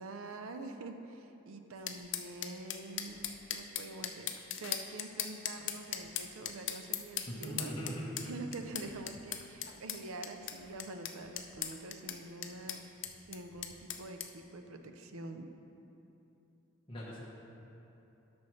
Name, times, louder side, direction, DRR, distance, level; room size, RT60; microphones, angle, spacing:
voice 1, 0.0-4.3 4.6-7.7 8.2-12.8 13.3-15.5, right 2 dB, 80° right, 6 dB, 0.5 m, -46 dB
sound 1, 1.9-14.3, left 10 dB, 55° left, 0.5 m, -40 dB
voice 2, 7.3-8.1 16.9-17.2, equal, 25° left, -7 dB, 1.0 m, -40 dB
12.5 x 6.1 x 3.1 m, 3.0 s
head